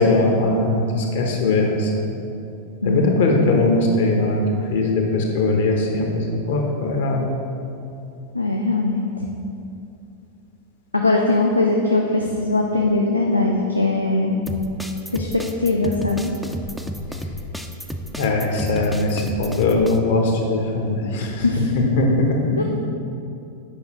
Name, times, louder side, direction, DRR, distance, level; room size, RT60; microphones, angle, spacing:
voice 1, 0.0-2.1 2.8-4.4 4.7-7.2 18.1-21.4 21.7-22.6, left 2 dB, 55° left, 1 dB, 1.0 m, -20 dB
voice 2, 2.8-3.2 8.3-9.0 10.9-14.4 15.1-16.3 21.4-21.7 22.6-22.7, left 2 dB, 85° left, 0 dB, 0.4 m, -20 dB
sound 1, 14.5-20.0, equal, ahead, 0.4 m, -31 dB
8.4 x 5.5 x 3.1 m, 2.6 s
figure-of-eight pair, 90°, 0 cm